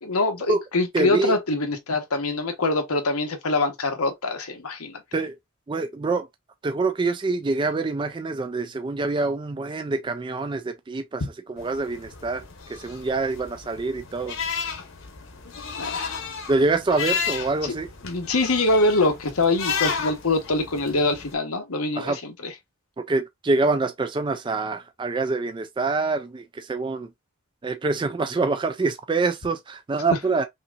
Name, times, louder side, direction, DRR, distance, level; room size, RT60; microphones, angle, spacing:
voice 1, 0.0-5.0 15.8-16.1 17.6-17.7 18.0-22.5, left 2 dB, 90° left, 1.1 m, -24 dB
voice 2, 0.9-1.4 5.1-5.4 5.7-6.3 6.6-12.4 12.7-14.4 16.5-17.9 22.0-22.2 23.0-27.1 27.6-30.5, right 3 dB, 20° right, 0.3 m, -25 dB
sound 1, 11.6-21.3, left 6 dB, 60° left, 1.0 m, -33 dB
5.5 x 2.8 x 2.4 m
head